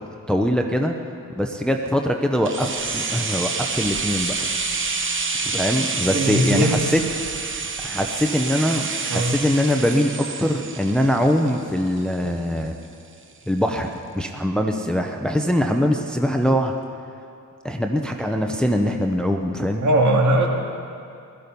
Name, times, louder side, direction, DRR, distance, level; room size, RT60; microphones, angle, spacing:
voice 1, 0.3-0.9 1.4-4.5 5.4-7.0 7.8-12.7 13.5-16.7 17.6-19.8, equal, ahead, 3 dB, 0.7 m, -22 dB
sound 1, 2.5-12.3 12.6-12.7, right 4 dB, 35° right, 1.0 m, -28 dB
voice 2, 6.1-6.7 9.1-9.4 19.8-20.5, right 1 dB, 55° right, 0 dB, 2.3 m, -19 dB
17.0 x 14.0 x 5.4 m, 2.5 s
wide cardioid pair, 135°, 35 cm